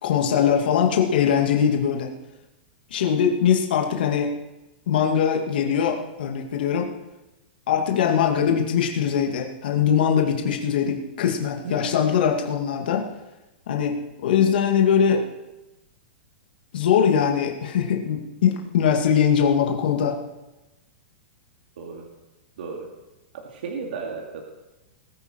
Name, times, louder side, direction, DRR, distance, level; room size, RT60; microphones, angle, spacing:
voice 1, 0.0-2.1 2.9-4.3 4.9-6.9 7.7-13.0 13.7-13.9 14.2-15.2 16.7-20.1, left 8 dB, 60° left, 1 dB, 2.2 m, -21 dB
voice 2, 11.6-12.0 21.8-22.1 22.6-22.9 23.3-24.4, right 4 dB, 60° right, -1 dB, 2.6 m, -34 dB
20.5 x 9.9 x 4.6 m, 1.0 s
supercardioid pair, 175°, 6 cm